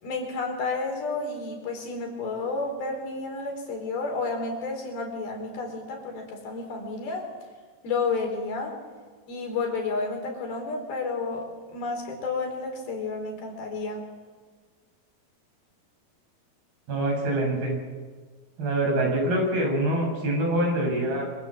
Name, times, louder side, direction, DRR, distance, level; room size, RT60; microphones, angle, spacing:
voice 1, 0.0-7.3 7.8-8.8 9.3-14.1, left 3 dB, 75° left, 2 dB, 6.3 m, -31 dB
voice 2, 16.9-17.7 18.6-21.3, right 1 dB, 80° right, 1 dB, 9.0 m, -25 dB
26.0 x 25.5 x 7.6 m, 1.5 s
omnidirectional pair, 4.4 m